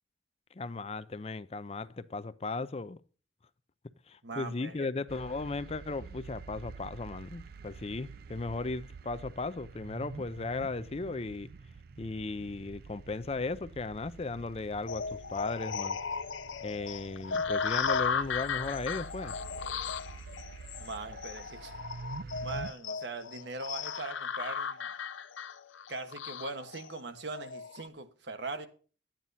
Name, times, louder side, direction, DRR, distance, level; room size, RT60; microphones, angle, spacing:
voice 1, 0.5-3.0 4.1-11.5 12.0-16.0 16.6-19.4, left 3 dB, 30° left, 0.5 m, -36 dB
voice 2, 4.2-4.9 20.8-21.8 22.4-24.9 25.9-28.7, right 3 dB, 65° right, 1.3 m, -40 dB
sound 1, 5.1-22.7, right 4 dB, 50° right, 0.4 m, -47 dB
sound 2, 14.9-27.9, left 5 dB, 85° left, 0.6 m, -36 dB
12.5 x 8.9 x 4.1 m
head